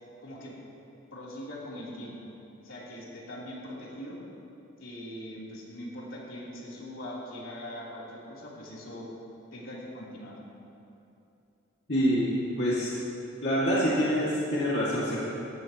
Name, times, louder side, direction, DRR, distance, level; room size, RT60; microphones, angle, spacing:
voice 1, 0.2-0.5 1.1-2.3 2.6-4.2 4.8-9.1 9.5-10.4, equal, 80° left, -6 dB, 3.7 m, -41 dB
voice 2, 11.9-13.0 13.4-15.2, equal, 55° left, -8 dB, 2.4 m, -26 dB
20.5 x 15.5 x 3.1 m, 2.8 s
head